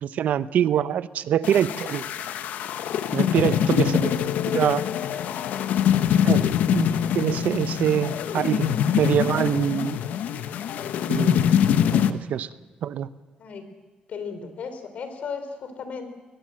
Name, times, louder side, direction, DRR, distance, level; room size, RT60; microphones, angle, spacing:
voice 1, 0.0-2.0 3.1-4.1 4.5-4.8 6.2-6.4 6.7-6.9 7.1-8.7 9.0-10.0 11.1-11.4 12.1-12.5 12.8-13.1, right 10 dB, 70° right, 15 dB, 0.8 m, -24 dB
sound 1, 1.4-12.1, left 9 dB, 85° left, 1.1 m, -24 dB
voice 2, 14.1-16.1, left 5 dB, 60° left, 9 dB, 3.6 m, -35 dB
22.0 x 20.5 x 7.7 m, 1.3 s
cardioid pair, 130°, 3 cm